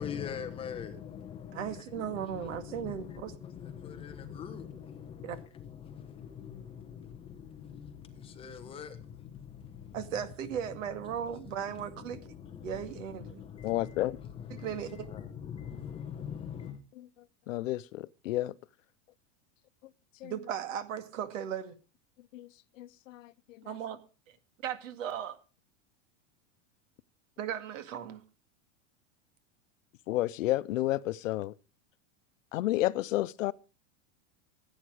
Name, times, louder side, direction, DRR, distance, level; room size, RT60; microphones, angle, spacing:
voice 1, 0.0-10.3 10.6-16.8, left 8 dB, 15° left, 1.0 m, -43 dB
voice 2, 1.5-3.3 5.2-5.4 9.9-12.3 12.6-13.4 14.5-15.1 20.2-21.8 23.6-24.0 24.3-24.4 24.6-25.4 27.4-28.2, right 9 dB, 75° right, 2.2 m, -37 dB
voice 3, 13.6-14.2 17.5-18.5 20.2-20.3 22.3-22.5 22.8-23.3 30.1-31.5 32.5-33.5, left 16 dB, 80° left, 0.8 m, -31 dB
15.5 x 9.0 x 4.9 m
supercardioid pair, 175°, 39 cm